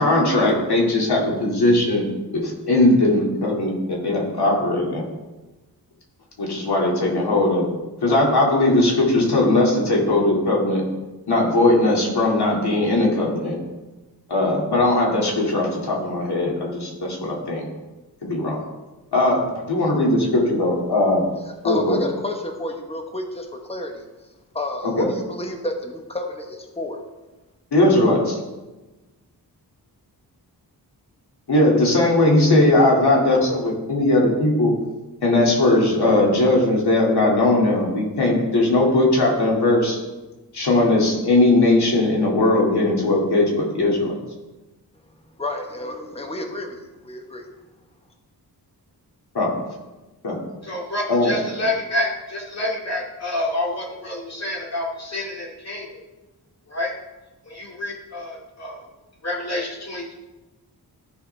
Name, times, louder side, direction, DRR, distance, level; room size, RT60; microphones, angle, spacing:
voice 1, 0.0-2.0 2.3-5.0 6.4-7.7 8.0-10.8 11.3-13.5 14.3-17.6 18.2-18.6 19.1-21.3 21.6-22.0 24.8-25.1 27.7-28.4 31.5-34.7 35.2-40.0 40.5-44.1 49.3-49.6 50.2-50.4 51.1-51.3, left 2 dB, 75° left, -2 dB, 2.3 m, -19 dB
voice 2, 21.5-24.0 24.5-27.0 45.3-46.8 47.0-47.4, left 1 dB, 15° left, 3 dB, 1.1 m, -30 dB
voice 3, 50.6-55.9 56.7-56.9 57.5-58.8 59.2-60.1, left 1 dB, 40° left, -3 dB, 2.3 m, -28 dB
14.0 x 4.9 x 3.3 m, 1.1 s
wide cardioid pair, 105°, 39 cm